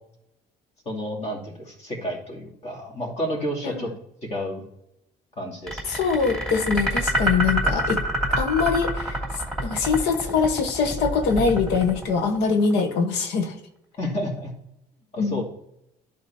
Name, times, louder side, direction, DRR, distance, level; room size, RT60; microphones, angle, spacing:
voice 1, 0.9-3.9 4.2-4.6 5.4-5.8 14.0-14.5 15.1-15.4, equal, 40° left, -1 dB, 2.6 m, -30 dB
sound 1, 5.7-12.8, right 1 dB, 5° left, 2.8 m, -26 dB
voice 2, 5.9-8.0 8.4-9.2 9.6-13.5 15.2-15.4, left 5 dB, 90° left, 6 dB, 1.2 m, -23 dB
11.0 x 4.1 x 4.3 m, 0.81 s
cardioid pair, 110°, 17 cm